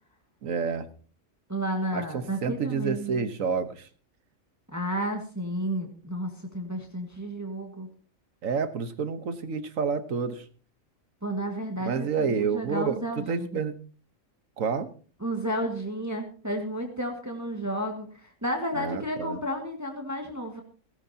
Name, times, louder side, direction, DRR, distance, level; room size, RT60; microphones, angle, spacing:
voice 1, 0.4-0.9 1.9-3.9 8.4-10.5 11.9-13.7 14.6-14.9 18.7-19.4, right 5 dB, 75° right, 11 dB, 1.6 m, -29 dB
voice 2, 1.5-3.3 4.7-7.9 11.2-13.6 15.2-20.6, right 1 dB, 10° right, 2 dB, 1.9 m, -32 dB
17.5 x 17.0 x 2.9 m, 0.39 s
omnidirectional pair, 1.4 m